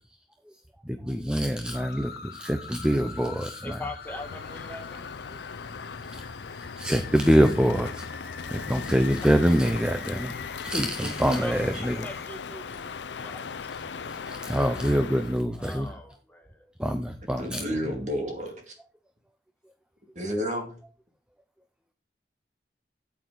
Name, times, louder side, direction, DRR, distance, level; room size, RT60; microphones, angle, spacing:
voice 1, 0.5-3.8 5.3-5.4 6.1-8.0 8.5-12.1 14.1-16.0 16.8-18.0, equal, 5° right, 7 dB, 0.5 m, -26 dB
sound 1, 1.7-12.3, left 6 dB, 60° left, 0.9 m, -45 dB
voice 2, 3.6-5.0 11.3-11.6 11.9-12.7 13.2-13.4 15.5-16.7, left 1 dB, 10° left, 3 dB, 1.5 m, -40 dB
Crow, 4.0-15.4, left 5 dB, 85° left, 0.6 m, -38 dB
voice 3, 11.3-11.8 17.4-18.8 20.2-20.8, equal, 40° right, 3 dB, 2.2 m, -32 dB
8.8 x 8.3 x 3.9 m, 0.38 s
head